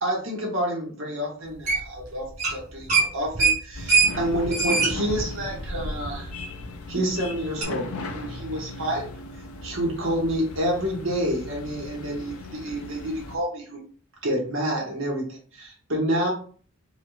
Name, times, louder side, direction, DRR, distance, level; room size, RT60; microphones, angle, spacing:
voice 1, 0.0-6.3 6.9-9.0 9.6-13.8 14.2-16.3, equal, 65° right, -3 dB, 1.5 m, -28 dB
sound 1, 1.7-2.0 2.3-2.6 2.9-6.3 6.6-6.7 7.6-7.7, right 4 dB, 35° right, 1.8 m, -23 dB
sound 2, 3.7-13.4, left 3 dB, 80° left, 0.6 m, -38 dB
4.7 x 2.4 x 3.3 m, 0.43 s
head